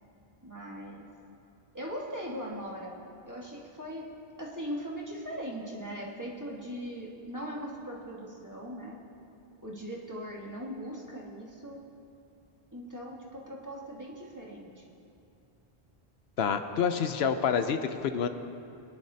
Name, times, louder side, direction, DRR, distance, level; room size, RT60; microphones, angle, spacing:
voice 1, 0.4-1.1 1.7-3.0 3.3-4.0 4.4-9.0 9.6-11.8 12.7-14.9, equal, 15° right, -4 dB, 1.7 m, -39 dB
voice 2, 16.4-18.3, left 7 dB, 80° left, 8 dB, 0.9 m, -28 dB
23.5 x 10.5 x 2.8 m, 2.7 s
omnidirectional pair, 1.1 m